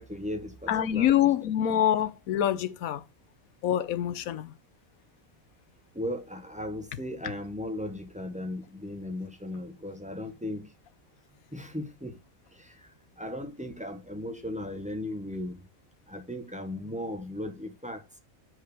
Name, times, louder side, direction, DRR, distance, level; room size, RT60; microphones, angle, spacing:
voice 1, 0.0-1.3 5.9-10.7 11.5-12.2 12.5-12.9 13.2-15.7 16.1-18.0, left 1 dB, 5° right, 0.9 m, -37 dB
voice 2, 0.7-3.0 3.6-4.5, left 11 dB, 90° left, 1.2 m, -25 dB
7.4 x 4.9 x 4.9 m
omnidirectional pair, 1.4 m